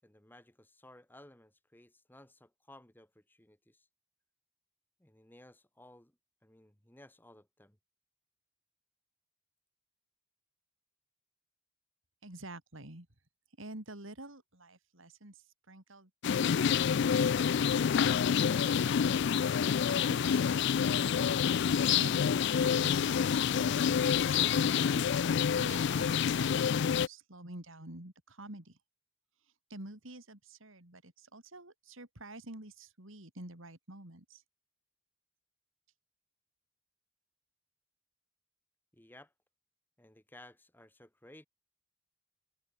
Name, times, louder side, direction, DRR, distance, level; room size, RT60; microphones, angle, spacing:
voice 1, 0.0-3.9 5.0-7.8 38.9-39.3 40.0-41.5, left 1 dB, 10° left, 1.5 m, -57 dB
voice 2, 12.2-13.1 13.6-16.7 17.6-19.0 19.8-21.3 21.7-25.1 25.6-26.5 26.8-28.8 29.7-34.4, right 2 dB, 65° right, 3.6 m, -49 dB
sound 1, 16.2-27.1, left 7 dB, 55° left, 0.3 m, -28 dB
head